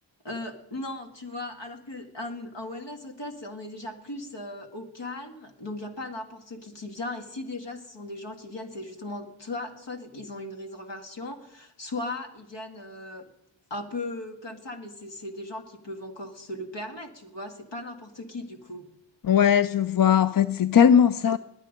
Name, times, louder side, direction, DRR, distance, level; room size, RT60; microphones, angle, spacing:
voice 1, 0.2-13.3 13.7-18.9, left 2 dB, 65° left, 2.1 m, -37 dB
voice 2, 19.2-21.4, left 8 dB, 50° left, 0.5 m, -19 dB
21.0 x 8.3 x 5.2 m
cardioid pair, 45°, 47 cm